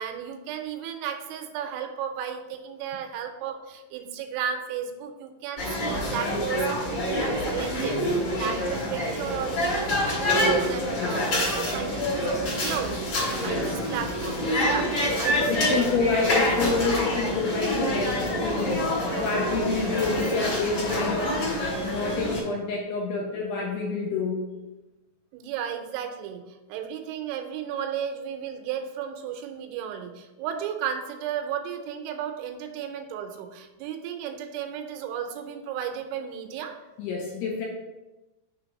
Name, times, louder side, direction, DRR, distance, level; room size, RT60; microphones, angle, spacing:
voice 1, 0.0-16.1 25.3-36.7, right 8 dB, 85° right, 6 dB, 3.0 m, -34 dB
sound 1, 5.6-22.4, left 1 dB, 45° left, 2.1 m, -27 dB
voice 2, 11.0-11.3 13.4-13.8 15.5-24.5 37.0-37.7, left 4 dB, 80° left, -2 dB, 2.5 m, -28 dB
6.9 x 3.4 x 5.1 m, 1.1 s
omnidirectional pair, 5.5 m